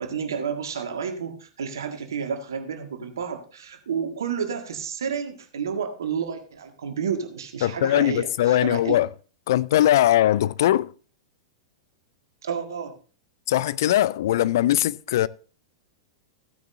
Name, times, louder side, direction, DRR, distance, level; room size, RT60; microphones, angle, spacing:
voice 1, 0.0-9.0 12.4-13.0, right 7 dB, 65° right, 1.7 m, -30 dB
voice 2, 7.6-9.1 9.5-10.9 13.5-15.3, left 13 dB, 55° left, 0.4 m, -20 dB
15.0 x 9.5 x 2.6 m
figure-of-eight pair, 95°, 2 cm